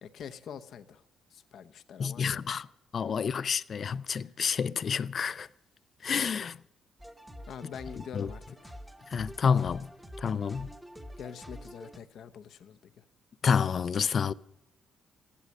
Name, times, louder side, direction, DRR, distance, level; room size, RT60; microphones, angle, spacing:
voice 1, 0.0-1.0 1.3-2.6 3.0-3.2 4.2-4.3 7.5-8.8 11.2-13.0, left 8 dB, 70° left, 0.8 m, -45 dB
voice 2, 2.0-2.7 2.9-5.5 6.0-6.6 8.1-8.3 9.1-9.9 10.2-10.7 13.4-14.3, left 6 dB, 50° left, 0.4 m, -29 dB
sound 1, 7.0-12.0, equal, 5° right, 1.0 m, -46 dB
15.5 x 11.5 x 6.5 m
cardioid pair, 90°, 0 cm